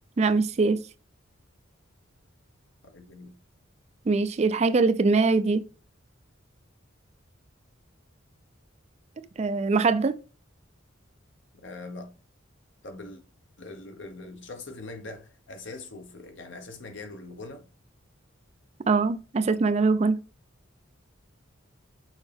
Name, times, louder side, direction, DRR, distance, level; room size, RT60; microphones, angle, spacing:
voice 1, 0.2-0.8 4.1-5.6 9.4-10.2 18.9-20.2, right 4 dB, 35° right, 0.4 m, -22 dB
voice 2, 2.8-3.3 11.6-12.1 12.8-13.2 13.6-17.6, left 2 dB, 65° left, 1.1 m, -42 dB
6.3 x 4.4 x 3.4 m
head